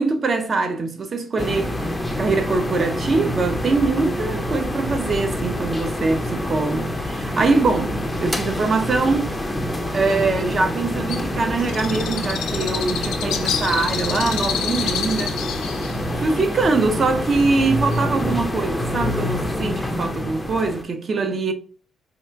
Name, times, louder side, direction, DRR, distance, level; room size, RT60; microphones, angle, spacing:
voice 1, 0.0-1.8 2.2-9.3 9.9-15.4 16.2-21.5, right 3 dB, 40° right, 0.6 m, -23 dB
sound 1, 1.4-20.8, left 1 dB, 10° left, 0.5 m, -26 dB
Bird, 11.1-18.3, left 8 dB, 85° left, 0.4 m, -29 dB
4.2 x 2.4 x 2.4 m
cardioid pair, 90°, 0 cm